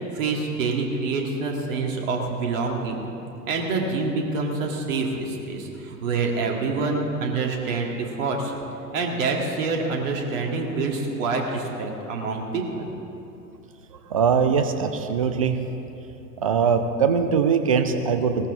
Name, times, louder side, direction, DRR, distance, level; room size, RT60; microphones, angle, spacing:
voice 1, 0.0-3.0 3.5-8.5 8.9-12.9, right 3 dB, 50° right, 1 dB, 2.1 m, -26 dB
voice 2, 13.9-15.6 16.4-18.5, right 6 dB, 25° right, 7 dB, 0.3 m, -22 dB
18.5 x 14.0 x 3.7 m, 2.8 s
figure-of-eight pair, 100°, 50 cm